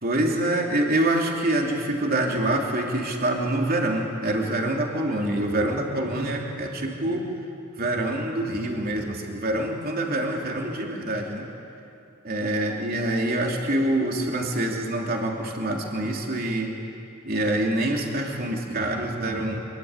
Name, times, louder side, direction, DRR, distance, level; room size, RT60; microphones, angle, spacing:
voice 1, 0.0-7.3 7.8-11.5 12.2-16.8 17.2-19.7, right 1 dB, 45° right, 0 dB, 3.2 m, -26 dB
26.0 x 22.5 x 9.8 m, 2.6 s
head